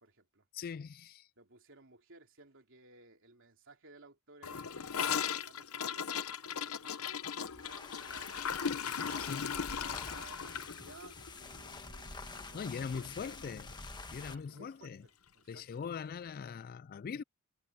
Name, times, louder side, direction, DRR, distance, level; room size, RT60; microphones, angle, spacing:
voice 1, 0.0-0.4 1.4-8.6 9.2-13.6 14.2-15.6, right 3 dB, 60° right, 3.4 m, -58 dB
voice 2, 0.5-1.3 9.2-9.6 12.5-13.7 14.1-15.1 15.5-17.2, left 6 dB, 45° left, 0.3 m, -41 dB
Gurgling / Toilet flush, 4.4-12.7 12.9-13.1 13.4-13.8 14.1-14.2 14.5-14.6 15.5-15.6, left 7 dB, 80° left, 0.8 m, -38 dB
sound 1, 7.4-14.4, left 3 dB, 20° left, 1.3 m, -48 dB
head